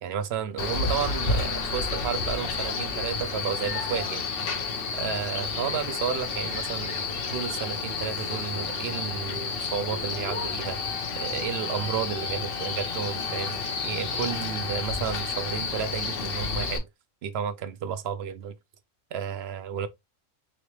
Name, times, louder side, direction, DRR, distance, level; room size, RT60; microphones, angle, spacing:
voice 1, 0.0-4.2 4.9-7.1 7.3-10.8 11.2-16.9 17.2-18.5 19.1-19.9, right 8 dB, 65° right, 0.7 m, -32 dB
Male speech man speaking, 0.6-16.8, left 4 dB, 50° left, 0.9 m, -31 dB
sound 1, 10.6-15.7, left 9 dB, 90° left, 1.3 m, -42 dB
3.9 x 3.2 x 3.1 m
omnidirectional pair, 1.4 m